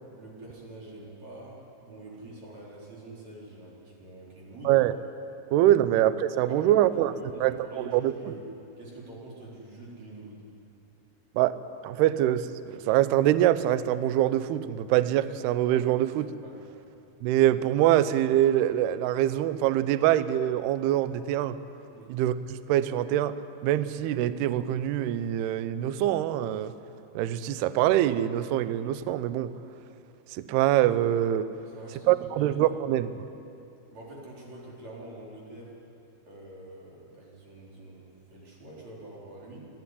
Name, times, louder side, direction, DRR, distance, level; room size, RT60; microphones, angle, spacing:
voice 1, 0.1-4.7 5.8-5.9 6.5-8.5 8.8-10.4 16.4-16.6 21.9-22.1 31.6-32.5 33.9-35.7 36.3-39.7, right 2 dB, 40° right, -4 dB, 4.9 m, -46 dB
voice 2, 5.5-7.1 7.4-8.1 11.4-11.6 11.8-16.3 17.2-21.6 22.1-22.3 22.7-23.3 23.6-26.7 27.2-29.5 30.3-31.5 32.1-33.3, right 12 dB, 85° right, 13 dB, 2.3 m, -24 dB
26.0 x 11.0 x 9.8 m, 2.7 s
omnidirectional pair, 5.5 m